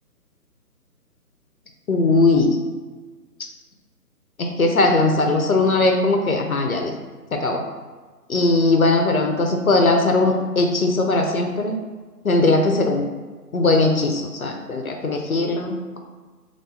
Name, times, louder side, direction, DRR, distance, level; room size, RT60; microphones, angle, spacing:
voice 1, 1.9-2.6 4.4-6.9 7.3-7.6 8.3-11.8 12.2-13.0 13.5-16.0, left 2 dB, 60° left, 3 dB, 0.6 m, -19 dB
3.2 x 2.6 x 4.1 m, 1.4 s
figure-of-eight pair, 150°, 48 cm